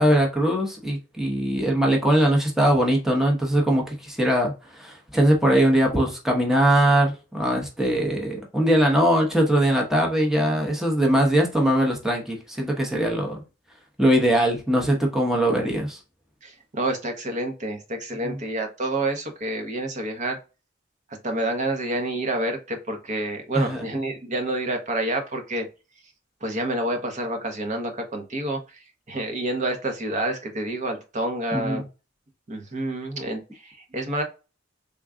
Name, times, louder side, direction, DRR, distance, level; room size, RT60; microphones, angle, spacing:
voice 1, 0.0-13.4 14.0-16.0 18.2-18.4 23.5-23.8 31.5-31.8, right 1 dB, ahead, 0.8 m, -21 dB
voice 2, 16.4-20.4 21.2-25.7 26.4-31.8 32.5-34.2, right 1 dB, 40° right, 0.8 m, -28 dB
3.5 x 2.2 x 3.5 m
head